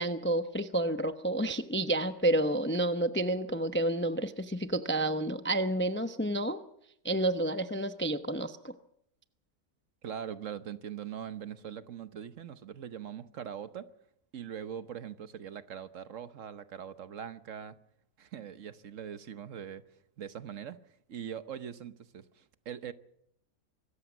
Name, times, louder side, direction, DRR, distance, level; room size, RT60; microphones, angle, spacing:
voice 1, 0.0-6.6 7.0-8.7, right 1 dB, 10° left, 0.5 m, -30 dB
voice 2, 10.0-13.9 14.3-17.8 18.2-19.8 20.2-20.8 21.1-22.9, right 8 dB, 60° right, 1.2 m, -42 dB
25.0 x 14.0 x 7.3 m
omnidirectional pair, 1.6 m